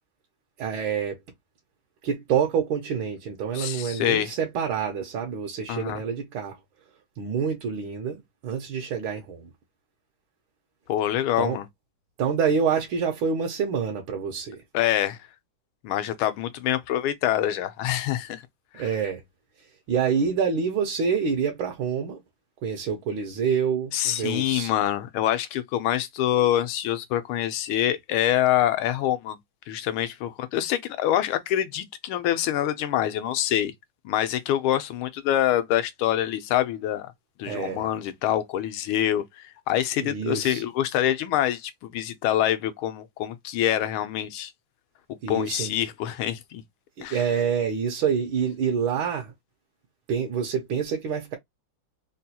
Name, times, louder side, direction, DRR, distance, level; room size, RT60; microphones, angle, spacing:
voice 1, 0.6-1.2 2.0-6.6 7.2-9.5 11.4-11.6 12.2-14.6 18.7-19.2 19.9-22.2 22.6-24.7 37.5-37.9 40.0-40.6 45.2-45.7 47.0-49.3 50.1-51.4, right 6 dB, 75° right, 1.5 m, -27 dB
voice 2, 3.5-4.3 5.7-6.0 10.9-11.6 14.7-15.2 15.8-18.4 23.9-29.4 29.7-33.7 34.0-37.1 37.4-39.2 39.7-44.5 45.3-46.6 47.0-47.2, left 12 dB, 90° left, 1.5 m, -25 dB
4.1 x 2.2 x 2.7 m
omnidirectional pair, 2.3 m